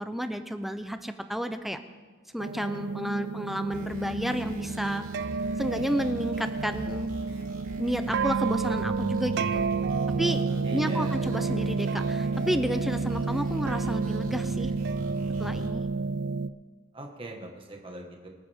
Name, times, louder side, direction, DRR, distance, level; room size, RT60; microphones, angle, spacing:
voice 1, 0.0-1.8 2.3-5.1 5.6-7.1 7.8-9.7 10.2-10.4 10.7-14.7 15.4-15.9, equal, ahead, 8 dB, 0.6 m, -31 dB
sound 1, 2.4-16.5, right 4 dB, 55° right, 0.4 m, -30 dB
sound 2, 3.7-15.7, equal, 75° right, 3.2 m, -42 dB
voice 2, 10.6-11.2 16.9-18.3, right 1 dB, 25° right, 1 dB, 1.7 m, -41 dB
24.5 x 8.8 x 3.6 m, 1.5 s
head